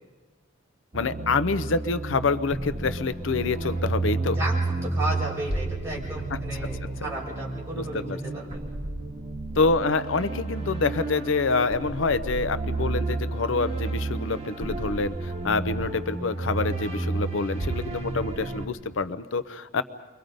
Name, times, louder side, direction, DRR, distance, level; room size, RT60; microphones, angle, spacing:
voice 1, 0.9-4.4 6.3-7.1 7.7-8.2 9.6-19.8, left 4 dB, 80° left, 13 dB, 0.7 m, -27 dB
sound 1, 0.9-18.7, right 2 dB, 35° right, 2.1 m, -31 dB
voice 2, 4.4-8.8, right 1 dB, 15° right, -5 dB, 6.1 m, -34 dB
29.5 x 23.5 x 5.2 m, 1.3 s
head